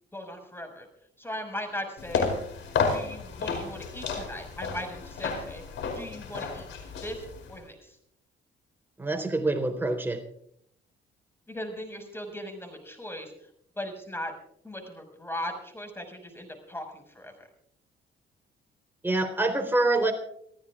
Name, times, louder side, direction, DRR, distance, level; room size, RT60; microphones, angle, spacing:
voice 1, 0.1-0.9 1.2-2.3 2.8-5.6 6.0-8.0 11.5-13.3 13.8-14.3 14.6-17.5, left 1 dB, 10° left, 5 dB, 5.7 m, -38 dB
sound 1, 2.0-7.6, left 5 dB, 75° left, 5.0 m, -32 dB
voice 2, 9.0-10.2 19.0-20.1, right 2 dB, 10° right, 3 dB, 3.8 m, -26 dB
29.5 x 14.5 x 2.5 m, 0.71 s
cardioid pair, 90°, 20 cm